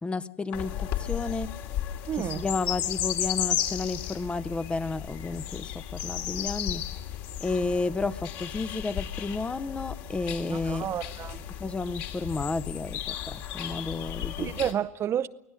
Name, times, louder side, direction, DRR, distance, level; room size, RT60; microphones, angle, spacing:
voice 1, 0.0-1.5 2.1-6.8 7.4-10.9 11.6-14.5, left 3 dB, 10° left, 0.8 m, -32 dB
sound 1, 0.5-14.7, left 11 dB, 50° left, 2.7 m, -34 dB
voice 2, 2.1-2.4 10.5-11.4 14.4-15.3, right 10 dB, 30° right, 0.7 m, -30 dB
24.0 x 17.5 x 7.6 m
hypercardioid pair, 100°, 9 cm